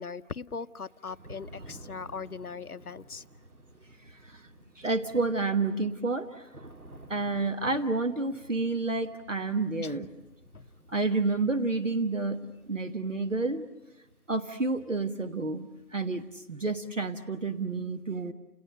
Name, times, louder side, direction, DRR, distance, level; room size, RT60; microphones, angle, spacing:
voice 1, 0.0-3.2 9.8-10.0 10.5-10.6, left 5 dB, 70° left, 14 dB, 0.9 m, -39 dB
Thunder / Rain, 0.8-16.5, right 1 dB, 70° right, 3.4 m, -53 dB
voice 2, 4.1-4.4 4.8-6.5 7.1-10.1 10.9-13.7 14.3-18.3, right 3 dB, 50° right, 8 dB, 1.3 m, -30 dB
30.0 x 28.5 x 6.6 m, 1.0 s
figure-of-eight pair, 180°, 46 cm